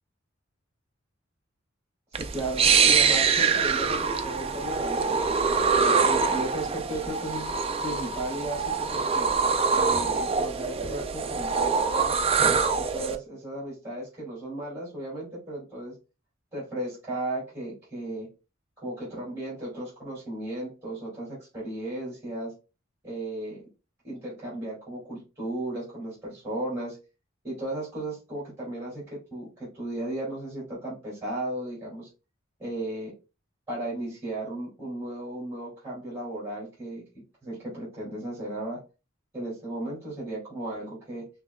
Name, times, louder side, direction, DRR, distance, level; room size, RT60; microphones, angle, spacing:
sound 1, 2.1-13.2, right 5 dB, 30° right, 0.4 m, -24 dB
voice 1, 2.2-5.1 5.8-7.5 7.8-9.3 9.7-12.1 12.7-15.9 16.5-18.3 18.8-22.5 23.0-23.6 24.0-27.0 27.4-32.1 32.6-33.1 33.7-37.0 37.4-38.8 39.3-41.3, right 1 dB, 15° right, -6 dB, 2.5 m, -35 dB
5.9 x 3.1 x 2.2 m, 0.29 s
head